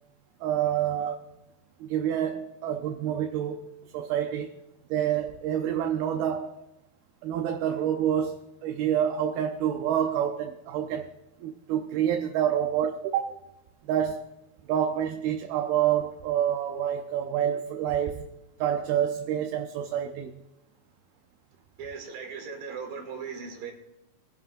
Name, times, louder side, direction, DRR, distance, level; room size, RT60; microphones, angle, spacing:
voice 1, 0.4-1.2 1.8-4.6 4.9-6.5 7.2-11.1 11.4-13.4 13.8-14.3 14.7-18.3 18.6-20.4, right 10 dB, 80° right, 2.6 m, -28 dB
voice 2, 21.8-23.7, right 5 dB, 60° right, 3.7 m, -38 dB
22.5 x 11.0 x 2.6 m
omnidirectional pair, 4.5 m